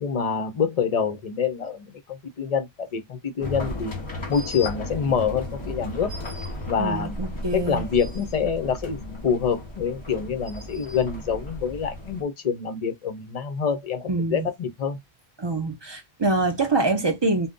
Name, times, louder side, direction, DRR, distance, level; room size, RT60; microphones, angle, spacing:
voice 1, 0.0-3.9 4.3-6.1 6.7-7.2 7.5-15.0, left 6 dB, 50° left, 0.5 m, -26 dB
sound 1, 3.4-12.2, left 1 dB, 30° left, 1.0 m, -35 dB
voice 2, 6.8-7.8 14.1-14.5 15.4-17.5, right 2 dB, 35° right, 0.4 m, -25 dB
2.5 x 2.1 x 3.5 m
omnidirectional pair, 1.0 m